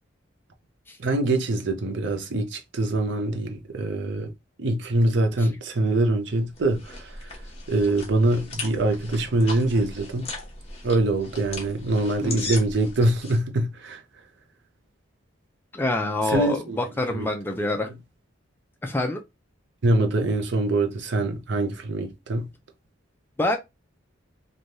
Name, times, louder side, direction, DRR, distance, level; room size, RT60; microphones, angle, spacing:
voice 1, 1.0-4.3 4.6-7.3 7.7-10.3 10.8-14.0 16.3-16.8 17.1-17.3 17.6-17.9 19.8-22.5, right 2 dB, 60° right, 0.6 m, -24 dB
sound 1, 6.3-13.4, left 3 dB, 30° left, 0.9 m, -38 dB
voice 2, 15.7-17.9 18.8-19.2 23.4-23.6, left 1 dB, 10° left, 0.3 m, -26 dB
3.2 x 2.2 x 2.6 m
head